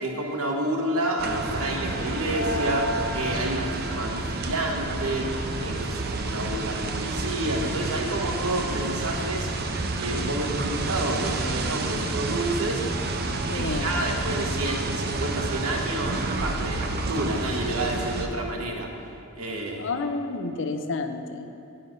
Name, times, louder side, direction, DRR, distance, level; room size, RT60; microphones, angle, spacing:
voice 1, 0.0-5.3 5.6-9.5 10.0-12.8 13.5-18.9 19.4-19.9, right 1 dB, 80° right, 1 dB, 1.1 m, -29 dB
sound 1, 1.2-18.3, right 2 dB, 45° right, 0.5 m, -29 dB
voice 2, 13.0-14.1 19.8-21.5, left 3 dB, 60° left, 7 dB, 0.5 m, -31 dB
8.9 x 5.7 x 5.3 m, 2.8 s
head